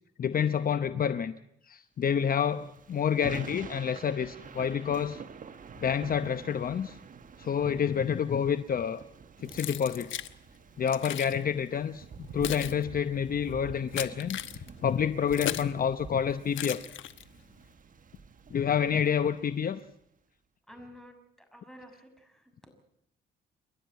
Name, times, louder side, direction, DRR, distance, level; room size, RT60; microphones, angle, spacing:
voice 1, 0.2-1.3 1.7-5.2 5.8-7.0 7.4-9.0 9.4-10.1 10.8-16.8 18.5-19.8, left 8 dB, 45° left, 12 dB, 0.9 m, -28 dB
Thunder / Rain, 2.3-19.8, right 5 dB, 40° right, 1.3 m, -48 dB
Keys jangling, 9.5-10.3 10.9-11.4 12.1-15.8 16.5-17.4, left 12 dB, 75° left, 1.2 m, -37 dB
voice 2, 20.7-22.7, equal, ahead, 6 dB, 6.5 m, -51 dB
29.0 x 12.0 x 9.4 m, 0.76 s
cardioid pair, 90°, 20 cm